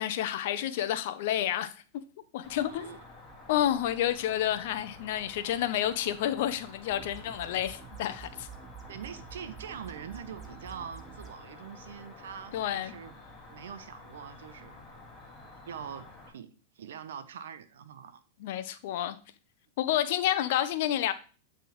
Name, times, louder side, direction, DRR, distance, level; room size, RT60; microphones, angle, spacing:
voice 1, 0.0-1.7 2.3-2.9 3.5-8.5 12.5-12.9 18.4-19.2 19.8-21.1, left 11 dB, 65° left, 0.6 m, -29 dB
Cricket, 2.4-16.3, left 2 dB, 20° left, 1.8 m, -50 dB
voice 2, 2.7-3.0 8.9-13.2 13.5-14.8 15.7-18.2, right 8 dB, 80° right, 0.7 m, -44 dB
sound 1, 6.9-11.3, right 7 dB, 20° right, 1.0 m, -48 dB
9.1 x 3.5 x 3.1 m
hypercardioid pair, 115°, 0 cm